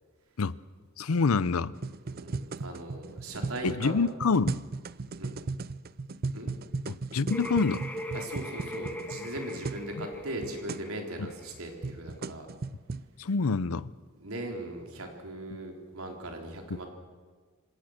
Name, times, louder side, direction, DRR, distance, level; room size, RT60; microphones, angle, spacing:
voice 1, 1.0-1.7 3.6-4.6 6.9-7.8 10.0-10.1 11.2-11.3 13.2-13.9, left 4 dB, 85° left, 0.6 m, -27 dB
sound 1, 1.7-9.9 10.1-10.2 10.4-10.9 11.5-13.1, right 3 dB, 45° right, 0.5 m, -37 dB
voice 2, 2.0-4.0 5.1-5.4 6.3-6.5 8.1-12.5 14.2-16.9, right 1 dB, 85° right, 3.9 m, -39 dB
sound 2, 7.3-12.0, equal, 10° left, 2.1 m, -40 dB
26.5 x 17.5 x 6.5 m
head